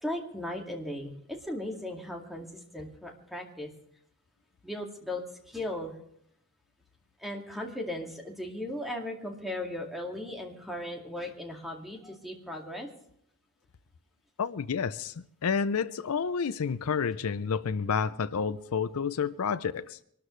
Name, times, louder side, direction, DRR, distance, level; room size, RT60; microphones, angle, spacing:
voice 1, 0.0-1.1 1.4-3.7 4.6-5.9 7.2-12.9, left 1 dB, ahead, 2.2 m, -37 dB
voice 2, 14.4-20.0, left 6 dB, 70° left, 0.5 m, -30 dB
25.0 x 12.5 x 3.2 m
head